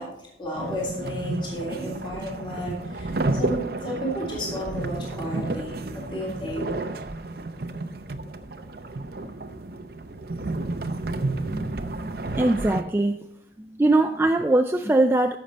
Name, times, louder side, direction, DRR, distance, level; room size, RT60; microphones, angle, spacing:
voice 1, 0.0-6.7, equal, 25° left, -3 dB, 3.3 m, -32 dB
sound 1, 0.5-12.8, right 2 dB, 55° right, 0.7 m, -31 dB
voice 2, 11.5-13.3 13.6-15.4, right 2 dB, 15° right, 6 dB, 0.3 m, -22 dB
14.0 x 6.6 x 4.3 m, 0.78 s
head